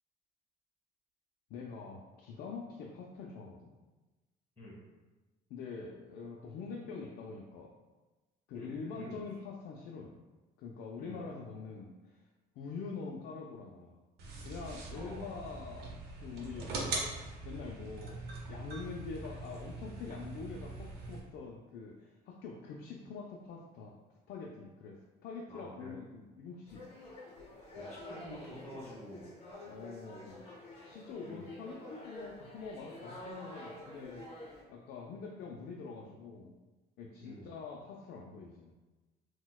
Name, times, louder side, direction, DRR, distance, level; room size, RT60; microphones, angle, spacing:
voice 1, 1.5-3.7 5.5-7.7 8.5-10.1 10.6-12.3 12.6-14.0 14.4-16.8 17.5-24.0 24.3-26.9 29.7-30.4 30.8-34.3 34.7-36.5 37.0-38.7, left 4 dB, 75° left, 0 dB, 0.4 m, -45 dB
voice 2, 8.5-9.2 11.0-11.2 14.9-15.3 25.5-26.0 27.7-29.3 31.2-31.5 37.2-37.5, equal, 15° left, -7 dB, 1.2 m, -48 dB
sound 1, 14.2-21.2, right 2 dB, 75° right, 0.6 m, -42 dB
sound 2, 26.7-34.6, left 1 dB, 35° left, 0.8 m, -49 dB
4.0 x 2.2 x 2.3 m, 1.2 s
cardioid pair, 110°, 17 cm